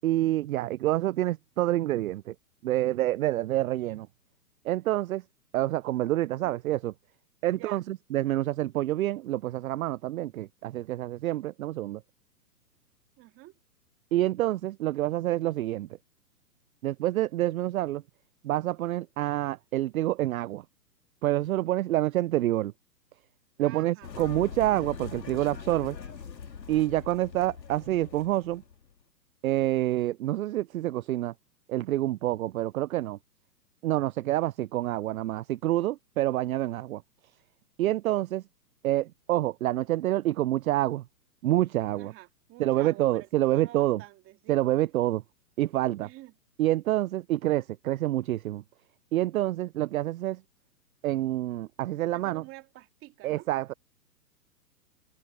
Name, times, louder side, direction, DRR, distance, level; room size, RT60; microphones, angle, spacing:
voice 1, 0.0-2.3 2.6-4.1 4.6-5.2 5.5-6.9 7.4-12.0 14.1-15.9 16.8-18.0 18.4-20.6 21.2-22.7 23.6-26.0 26.7-28.6 29.4-31.3 31.7-33.2 33.8-37.0 37.8-38.4 38.8-41.0 41.4-42.1 42.6-44.0 44.5-45.2 45.6-46.1 46.6-48.6 49.1-50.4 51.0-52.4 53.2-53.7, right 15 dB, 60° right, 0.5 m, -27 dB
voice 2, 6.2-6.6 7.5-7.8 13.2-13.5 23.6-24.1 41.9-43.3 43.5-44.6 46.0-46.3 52.1-53.5, right 18 dB, 25° right, 2.6 m, -48 dB
sound 1, 24.0-28.9, left 6 dB, 85° left, 2.6 m, -42 dB
open air
hypercardioid pair, 130°, 49 cm